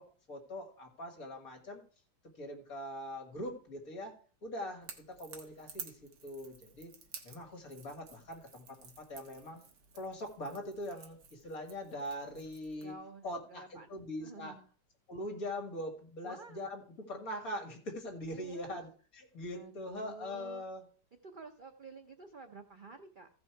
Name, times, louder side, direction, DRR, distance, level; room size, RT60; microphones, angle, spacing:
voice 1, 0.0-1.8 2.4-6.9 7.2-9.6 9.9-13.0 13.2-14.6 15.1-20.8, left 1 dB, 50° left, 3 dB, 2.3 m, -42 dB
Crackle / Crack, 4.8-12.9, right 6 dB, 70° right, 1.9 m, -52 dB
voice 2, 12.8-14.6 16.2-16.6 18.3-18.8 19.5-20.6 21.2-23.3, right 4 dB, 50° right, 6 dB, 0.6 m, -51 dB
15.0 x 5.6 x 4.5 m, 0.41 s
omnidirectional pair, 1.9 m